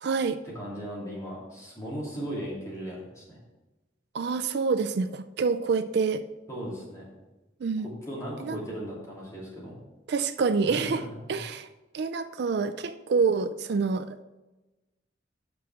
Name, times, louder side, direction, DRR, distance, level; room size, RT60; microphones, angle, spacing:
voice 1, 0.0-0.4 4.1-6.2 7.6-7.9 8.4-8.6 10.1-11.0 11.3-11.7 11.9-14.2, right 5 dB, 60° right, 10 dB, 0.4 m, -27 dB
voice 2, 0.5-3.4 6.5-7.1 7.8-9.7 10.6-11.0 11.3-11.4, equal, 15° left, -6 dB, 2.8 m, -37 dB
6.2 x 6.0 x 5.8 m, 1.1 s
head